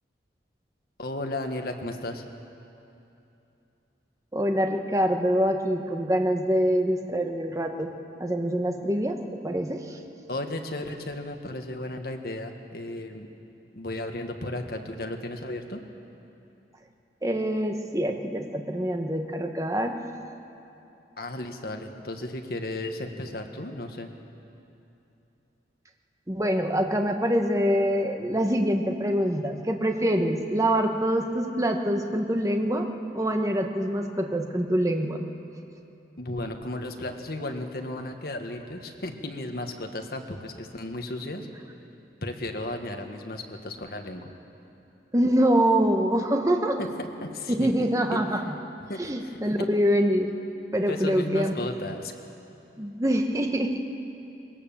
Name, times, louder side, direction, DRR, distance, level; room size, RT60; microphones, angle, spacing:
voice 1, 1.0-2.2 10.3-13.3 13.7-15.8 21.2-24.1 36.2-41.5 42.2-44.3 46.8-47.7 48.1-48.2 48.9-49.4 50.9-52.1, left 1 dB, 60° left, 4 dB, 1.5 m, -34 dB
voice 2, 4.3-7.9 8.2-9.2 9.4-10.0 17.2-20.0 26.3-32.9 33.1-35.2 45.1-46.8 47.5-48.5 49.0-50.3 50.7-51.5 52.8-53.8, equal, 20° right, 4 dB, 1.2 m, -25 dB
21.0 x 18.0 x 7.2 m, 2.8 s
head